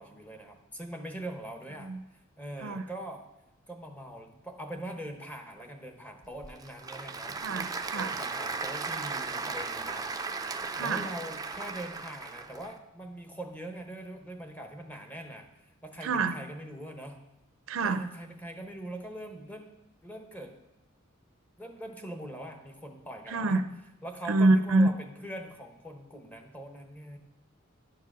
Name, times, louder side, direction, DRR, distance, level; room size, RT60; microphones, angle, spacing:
voice 1, 0.0-3.2 3.7-7.4 7.9-10.2 10.8-15.5 15.8-17.2 17.8-19.7 20.0-20.5 21.6-23.7 24.0-27.2, right 1 dB, 10° left, 4 dB, 0.9 m, -42 dB
Applause / Crowd, 6.2-12.7, right 4 dB, 20° right, 0.4 m, -36 dB
voice 2, 7.4-8.2 10.8-11.1 16.0-16.3 17.7-18.0 23.3-23.7 24.3-24.9, right 2 dB, 75° right, 11 dB, 0.5 m, -26 dB
10.5 x 4.7 x 6.0 m, 0.90 s
head